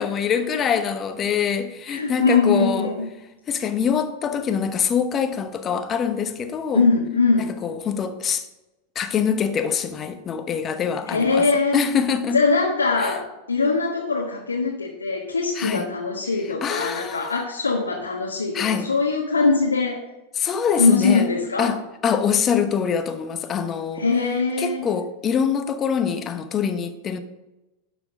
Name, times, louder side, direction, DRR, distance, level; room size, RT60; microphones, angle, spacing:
voice 1, 0.0-2.9 3.5-6.9 7.4-8.4 8.9-11.5 11.7-12.4 13.0-13.2 15.6-15.9 16.6-17.4 18.5-18.9 20.4-21.3 21.6-24.0 24.6-27.2, left 7 dB, 25° left, 1.0 m, -24 dB
voice 2, 1.9-3.1 6.7-7.5 11.1-11.8 12.3-20.0 20.8-21.7 23.9-24.8, left 4 dB, 75° left, 1.2 m, -22 dB
12.0 x 6.1 x 5.1 m
figure-of-eight pair, 90°, 0 cm